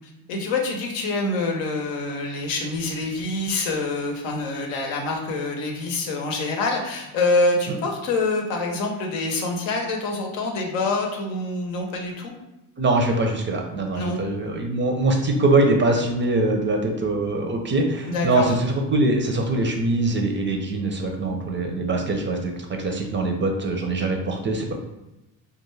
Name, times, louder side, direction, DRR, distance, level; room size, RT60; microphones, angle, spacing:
voice 1, 0.3-12.3 13.9-14.2 18.0-18.6, left 3 dB, 80° left, 1 dB, 0.7 m, -26 dB
voice 2, 12.8-22.5 22.8-24.7, right 2 dB, 25° right, 2 dB, 0.4 m, -23 dB
2.4 x 2.2 x 3.1 m, 0.94 s
supercardioid pair, 70°, 46 cm